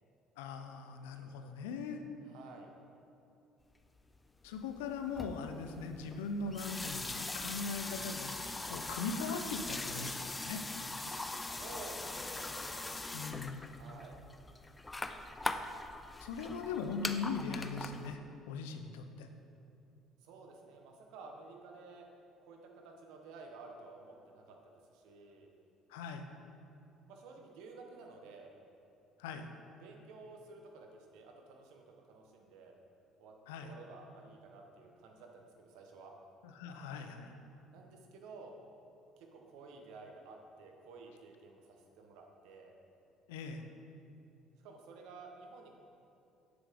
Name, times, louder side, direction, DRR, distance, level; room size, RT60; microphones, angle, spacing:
voice 1, 0.4-2.0 4.4-10.6 13.1-13.6 16.2-18.2 18.5-19.3 25.9-26.3 29.2-29.5 33.5-33.7 36.4-37.3 43.3-43.6, left 5 dB, 90° left, 6 dB, 0.5 m, -40 dB
voice 2, 2.2-2.7 11.4-12.8 13.7-14.2 20.2-22.1 22.4-25.5 27.1-28.5 29.8-30.9 31.1-32.7 33.2-33.3 33.6-36.1 37.7-38.5 39.2-42.7 44.6-45.8, right 3 dB, 75° right, 2 dB, 0.9 m, -53 dB
sound 1, 4.2-4.3 4.4-18.2, left 2 dB, 20° left, 0.4 m, -41 dB
7.1 x 7.0 x 3.5 m, 2.7 s
supercardioid pair, 75°, 0 cm